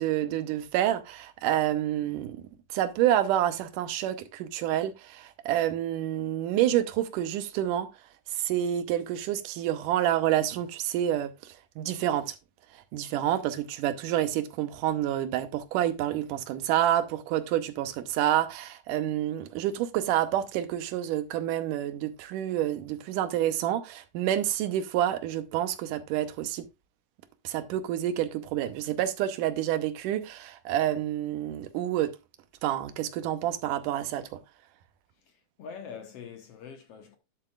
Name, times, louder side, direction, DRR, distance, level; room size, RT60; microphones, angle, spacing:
voice 1, 0.0-2.4 2.7-7.9 8.3-11.3 11.8-12.4 12.9-26.7 27.4-32.2 32.6-34.4, right 12 dB, 85° right, 2.4 m, -28 dB
voice 2, 35.6-37.2, left 6 dB, 60° left, 1.9 m, -43 dB
10.5 x 7.6 x 2.4 m
omnidirectional pair, 3.6 m